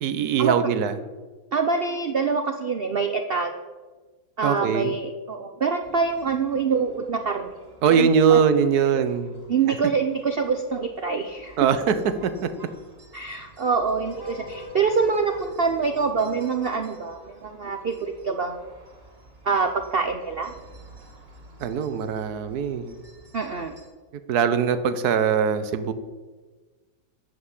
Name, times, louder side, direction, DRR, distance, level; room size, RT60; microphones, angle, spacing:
voice 1, 0.0-0.9 4.4-4.9 7.8-9.3 11.6-12.5 21.6-23.0 24.3-25.9, right 7 dB, 60° right, 12 dB, 1.2 m, -22 dB
voice 2, 1.5-3.5 4.4-7.5 8.0-8.4 9.5-11.6 13.1-18.7 19.4-20.5 23.3-23.7, right 5 dB, 75° right, 5 dB, 0.5 m, -25 dB
sound 1, 5.8-23.9, right 1 dB, 30° right, 2.7 m, -48 dB
13.0 x 5.8 x 8.1 m, 1.3 s
omnidirectional pair, 2.1 m